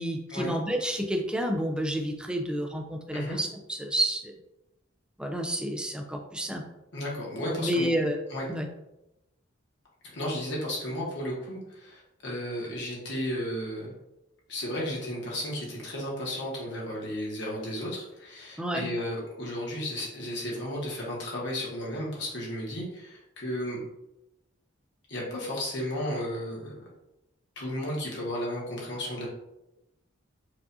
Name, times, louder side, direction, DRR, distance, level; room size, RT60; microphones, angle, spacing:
voice 1, 0.0-4.3 5.2-6.6 7.6-8.2 8.5-8.7 18.6-18.9, right 1 dB, 5° right, 2 dB, 0.4 m, -30 dB
voice 2, 6.9-7.9 8.3-8.5 10.1-13.9 14.5-23.8 25.1-26.8 27.6-29.3, equal, 60° left, -4 dB, 1.2 m, -33 dB
4.8 x 2.5 x 2.6 m, 0.91 s
head